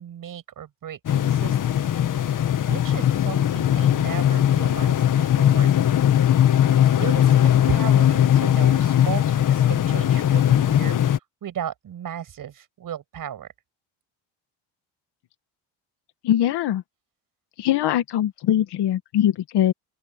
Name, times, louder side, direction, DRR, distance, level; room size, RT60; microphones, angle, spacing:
voice 1, 0.0-5.7 6.8-13.5, right 9 dB, 45° right, 7.3 m, -35 dB
sound 1, 1.1-11.2, left 10 dB, 45° left, 1.8 m, -19 dB
voice 2, 16.2-16.8 17.6-19.7, left 11 dB, 65° left, 1.9 m, -21 dB
open air
cardioid pair, 140°, 44 cm